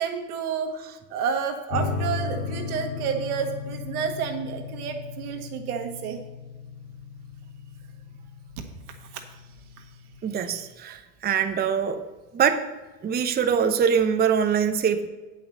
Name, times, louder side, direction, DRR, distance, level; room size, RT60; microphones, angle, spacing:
voice 1, 0.0-6.2 9.1-9.2, right 7 dB, 80° right, 4 dB, 1.6 m, -30 dB
sound 1, 1.7-10.7, left 5 dB, 75° left, 1.8 m, -36 dB
voice 2, 10.2-12.0 12.3-12.7 13.0-15.1, right 7 dB, 20° right, 7 dB, 0.7 m, -23 dB
8.6 x 5.5 x 7.1 m, 1.2 s
supercardioid pair, 100°, 43 cm